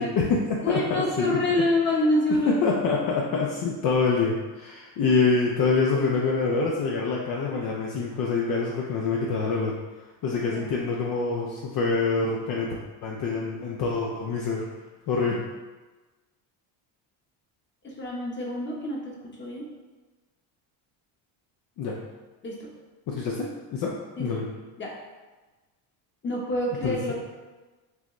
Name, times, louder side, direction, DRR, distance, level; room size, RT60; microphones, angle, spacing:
voice 1, 0.0-1.7 2.4-9.7 10.2-14.6 15.1-15.4 21.8-22.0 23.1-23.9 24.2-24.4 26.8-27.1, left 4 dB, 50° left, -2 dB, 0.6 m, -26 dB
voice 2, 0.6-2.6 10.3-11.0 17.8-19.6 22.4-22.5 24.2-24.5 24.8-24.9 26.2-27.1, left 1 dB, 25° left, -2 dB, 1.0 m, -27 dB
6.2 x 2.1 x 3.1 m, 1.2 s
cardioid pair, 120°, 45 cm